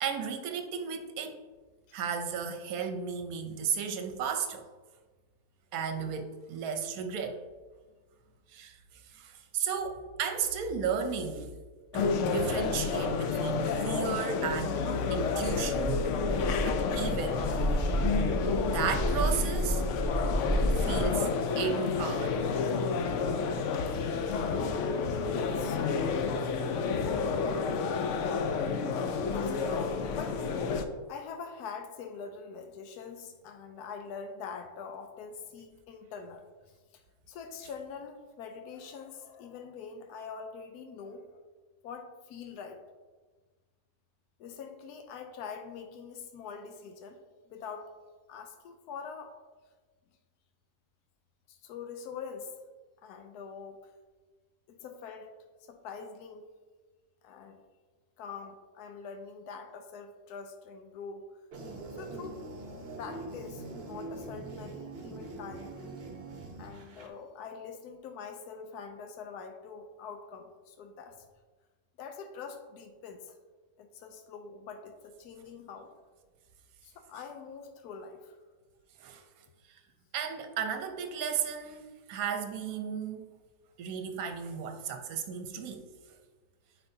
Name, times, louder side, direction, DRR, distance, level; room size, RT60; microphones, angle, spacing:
voice 1, 0.0-1.4 1.9-4.6 5.7-7.4 8.5-11.6 11.9-14.8 15.1-17.9 18.7-19.8 20.7-22.5 24.4-24.6 29.1-29.2 29.7-29.8 79.0-79.2 79.7-79.8 80.1-83.3 83.8-85.8 86.1-86.2, right 6 dB, 70° right, 6 dB, 1.1 m, -34 dB
sound 1, 11.9-30.8, left 5 dB, 70° left, 0.7 m, -30 dB
sound 2, 15.4-21.0, right 1 dB, 5° left, 1.6 m, -31 dB
voice 2, 25.4-26.4 26.7-26.9 29.3-30.4 31.1-41.4 41.8-42.8 44.4-47.2 47.5-47.9 48.3-49.4 51.5-52.5 53.0-53.9 54.7-56.4 57.2-57.6 58.2-61.3 61.9-62.4 63.0-65.7 66.6-71.3 72.0-73.4 73.8-75.9 76.8-78.4, left 5 dB, 85° left, 5 dB, 1.1 m, -44 dB
sound 3, 61.5-67.1, right 2 dB, 50° right, 0.9 m, -43 dB
9.3 x 4.5 x 2.7 m, 1.3 s
omnidirectional pair, 1.6 m